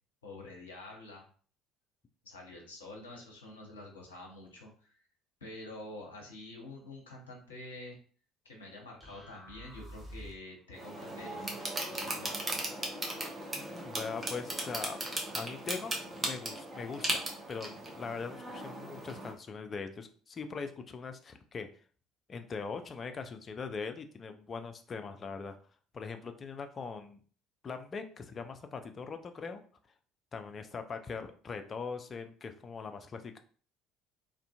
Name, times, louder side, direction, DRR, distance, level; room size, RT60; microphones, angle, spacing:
voice 1, 0.2-1.2 2.2-5.0 5.4-8.0 8.4-11.5 11.9-12.6, left 2 dB, 80° left, -1 dB, 0.6 m, -47 dB
sound 1, 9.0-10.6, equal, ahead, 1.2 m, -48 dB
sound 2, 10.7-19.3, right 1 dB, 25° right, 0.7 m, -37 dB
voice 2, 13.5-21.7 22.3-25.6 25.9-27.2 27.6-29.6 30.3-33.4, left 5 dB, 35° left, 7 dB, 0.3 m, -41 dB
2.5 x 2.4 x 2.2 m, 0.43 s
figure-of-eight pair, 55°, 0 cm